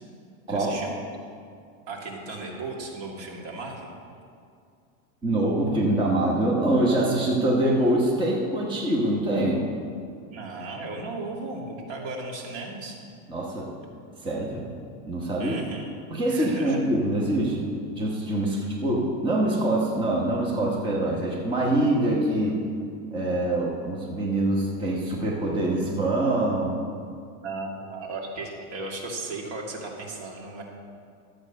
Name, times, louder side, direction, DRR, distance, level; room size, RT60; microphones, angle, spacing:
voice 1, 0.5-0.9 1.9-3.9 10.3-13.0 15.4-15.9 16.3-16.8 27.4-30.6, right 3 dB, 55° right, -1 dB, 2.3 m, -36 dB
voice 2, 5.2-9.7 13.3-13.7 14.2-14.7 15.1-15.5 16.1-22.6 23.1-26.8, right 1 dB, 10° right, -3 dB, 1.1 m, -24 dB
12.5 x 8.0 x 5.4 m, 2.4 s
supercardioid pair, 165°, 40 cm